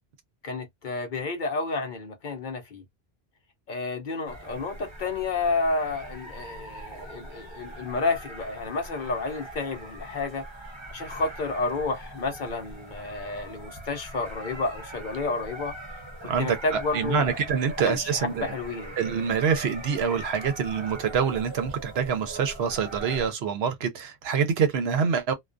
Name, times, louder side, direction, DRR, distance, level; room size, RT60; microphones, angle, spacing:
voice 1, 0.4-2.8 3.7-10.4 10.9-15.8 16.2-17.4 17.9-18.9, left 3 dB, 55° left, 0.7 m, -30 dB
sound 1, 4.2-23.3, right 2 dB, 25° right, 1.1 m, -41 dB
voice 2, 16.3-18.5 19.0-25.3, right 6 dB, 70° right, 0.9 m, -26 dB
2.2 x 2.2 x 2.5 m
omnidirectional pair, 1.1 m